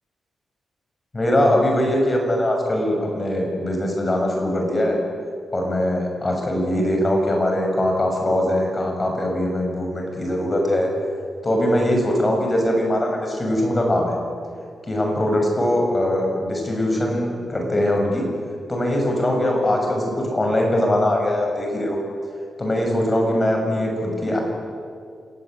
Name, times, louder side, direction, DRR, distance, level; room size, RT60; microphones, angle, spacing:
voice 1, 1.1-5.0 5.5-10.9 11.4-14.2 14.9-18.2 18.7-22.0 22.6-24.4, left 1 dB, 25° left, 1 dB, 6.6 m, -21 dB
28.0 x 17.5 x 9.2 m, 2.2 s
wide cardioid pair, 120°, 0 cm